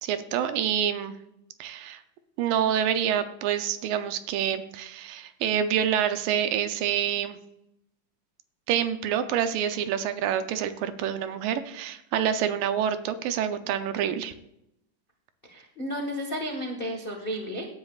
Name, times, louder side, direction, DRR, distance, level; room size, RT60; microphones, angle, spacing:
voice 1, 0.0-1.2 1.6-2.0 2.4-7.4 8.7-14.3, right 9 dB, 80° right, 10 dB, 2.4 m, -27 dB
voice 2, 15.4-17.7, equal, 75° left, 0 dB, 0.5 m, -33 dB
17.0 x 10.5 x 2.4 m, 0.81 s
omnidirectional pair, 3.9 m